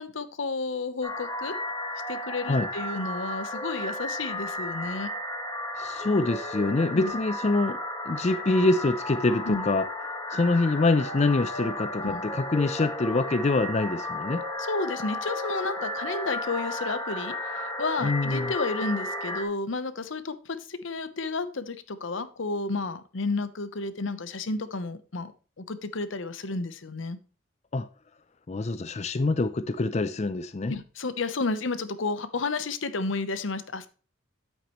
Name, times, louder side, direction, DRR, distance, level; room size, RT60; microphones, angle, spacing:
voice 1, 0.0-1.5 2.1-5.1 6.9-7.1 9.5-9.7 12.0-12.2 14.7-25.3 25.6-27.2 30.7-33.9, left 3 dB, 85° left, 0.9 m, -31 dB
enter mystic cave, 1.0-19.4, left 1 dB, 20° left, 1.4 m, -34 dB
voice 2, 5.8-7.8 8.1-9.9 10.3-14.4 18.0-18.5 27.7-27.9 28.5-30.8, left 2 dB, 35° left, 0.5 m, -25 dB
8.9 x 8.2 x 3.1 m
head